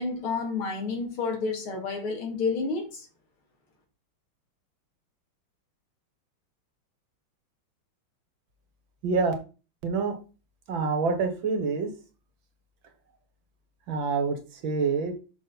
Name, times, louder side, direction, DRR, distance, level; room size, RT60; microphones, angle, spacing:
voice 1, 0.0-3.1, left 4 dB, 75° left, 2.9 m, -30 dB
voice 2, 9.0-9.3 9.8-10.2 10.7-11.9 13.9-15.1, right 4 dB, 65° right, 2.0 m, -26 dB
6.2 x 6.0 x 4.1 m
omnidirectional pair, 2.4 m